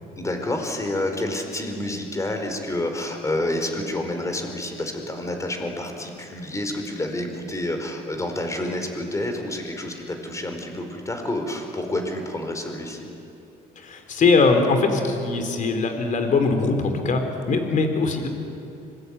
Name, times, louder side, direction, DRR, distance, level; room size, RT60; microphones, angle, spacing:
voice 1, 0.2-13.1, left 1 dB, 20° left, 4 dB, 4.8 m, -29 dB
voice 2, 13.8-17.2 17.5-18.3, left 4 dB, 50° left, 5 dB, 4.1 m, -21 dB
25.5 x 21.0 x 9.7 m, 2.8 s
cardioid pair, 110°, 17 cm